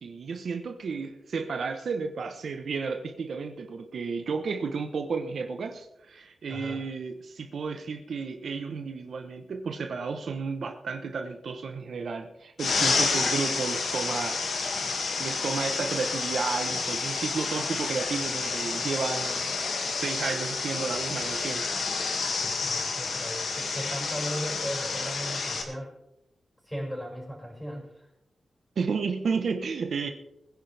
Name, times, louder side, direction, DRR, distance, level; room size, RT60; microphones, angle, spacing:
voice 1, 0.0-14.4 15.2-19.5 19.9-21.7 28.8-30.1, right 5 dB, 70° right, 1.1 m, -32 dB
sound 1, 12.6-25.6, left 4 dB, 75° left, 2.2 m, -29 dB
voice 2, 22.4-25.9 26.7-28.1, equal, 5° left, 5.9 m, -37 dB
21.0 x 10.5 x 3.5 m
wide cardioid pair, 95°, 0 cm